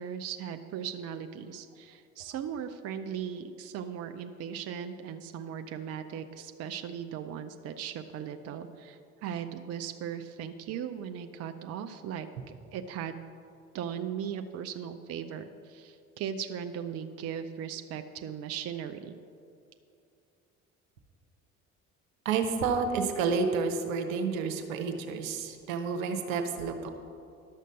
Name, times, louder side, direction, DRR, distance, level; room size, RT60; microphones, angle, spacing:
voice 1, 0.0-12.3 12.7-13.2 13.7-19.2, right 8 dB, 35° right, 8 dB, 0.6 m, -38 dB
voice 2, 22.2-26.9, right 5 dB, 70° right, 6 dB, 1.0 m, -30 dB
11.5 x 6.6 x 6.3 m, 2.5 s
figure-of-eight pair, 55°, 42 cm